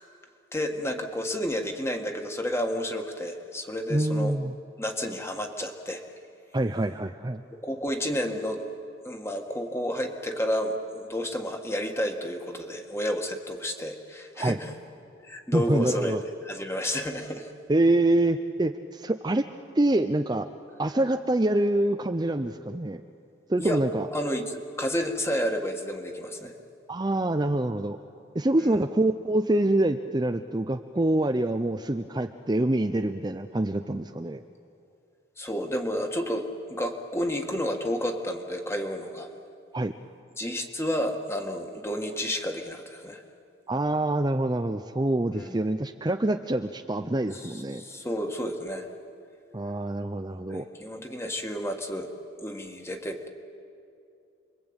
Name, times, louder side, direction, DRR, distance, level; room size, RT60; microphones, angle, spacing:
voice 1, 0.5-4.3 4.8-6.0 7.6-8.6 9.0-14.7 15.2-16.2 16.4-17.5 20.9-21.1 23.6-23.8 24.1-26.5 28.6-28.8 35.4-39.3 40.4-43.2 45.3-45.6 47.3-48.9 50.5-52.1 52.4-53.3, equal, 15° left, 4 dB, 1.7 m, -31 dB
voice 2, 3.9-4.5 6.5-7.4 14.4-14.6 15.5-16.2 17.7-19.4 19.7-20.5 20.8-23.0 23.5-24.1 26.9-28.0 28.3-34.4 39.7-39.9 43.7-47.8 49.5-50.6, right 1 dB, 20° right, 6 dB, 0.5 m, -25 dB
29.5 x 22.5 x 8.9 m, 2.6 s
head